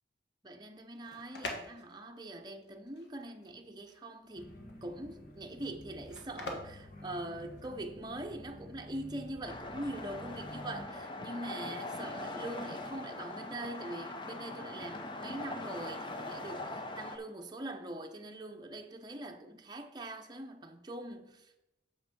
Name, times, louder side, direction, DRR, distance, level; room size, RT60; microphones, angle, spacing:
voice 1, 0.4-21.6, right 1 dB, 25° right, 0.7 m, -43 dB
sound 1, 0.8-7.9, left 2 dB, 75° left, 1.3 m, -46 dB
sound 2, 4.3-10.9, left 1 dB, 50° left, 1.4 m, -50 dB
sound 3, 9.4-17.2, left 2 dB, 25° left, 0.6 m, -42 dB
7.1 x 5.8 x 5.3 m
head